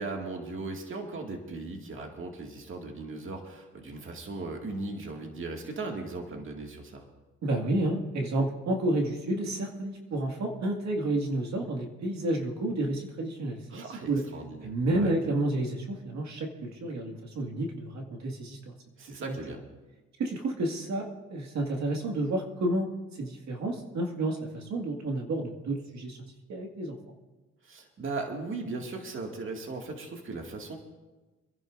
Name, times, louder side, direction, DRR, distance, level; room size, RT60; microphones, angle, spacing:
voice 1, 0.0-7.0 13.7-15.1 19.0-19.6 27.6-30.8, right 3 dB, 45° right, 2 dB, 2.1 m, -38 dB
voice 2, 7.4-14.2 14.6-18.7 20.2-22.9 23.2-26.2 26.5-27.0, right 1 dB, 65° right, 1 dB, 2.1 m, -30 dB
27.5 x 11.0 x 2.6 m, 1.2 s
cardioid pair, 90°, 30 cm